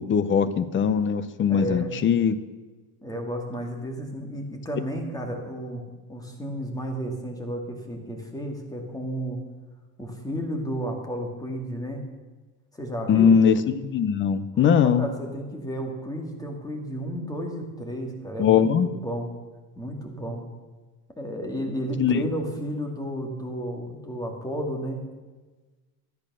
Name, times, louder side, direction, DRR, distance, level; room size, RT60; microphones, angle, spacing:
voice 1, 0.0-2.4 13.1-15.1 18.4-18.9 22.0-22.2, left 7 dB, 30° left, 14 dB, 0.6 m, -21 dB
voice 2, 1.5-1.9 3.0-5.8 6.1-9.4 10.0-12.0 12.7-13.4 14.5-19.3 19.8-20.4 21.2-25.0, equal, 10° left, 2 dB, 2.2 m, -32 dB
12.0 x 9.9 x 6.1 m, 1.3 s
cardioid pair, 135°, 42 cm